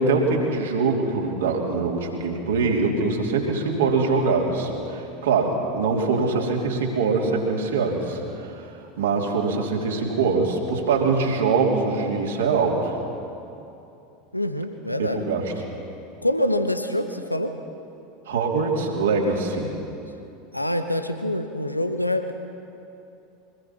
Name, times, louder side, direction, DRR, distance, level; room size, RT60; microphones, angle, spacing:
voice 1, 0.0-13.0 15.0-15.5 18.2-19.8, right 4 dB, 65° right, -1 dB, 3.2 m, -23 dB
voice 2, 6.2-6.5 14.3-15.2 16.2-17.6 20.5-22.3, left 1 dB, 90° left, 8 dB, 0.9 m, -26 dB
24.5 x 20.0 x 5.8 m, 2.8 s
figure-of-eight pair, 80°, 0 cm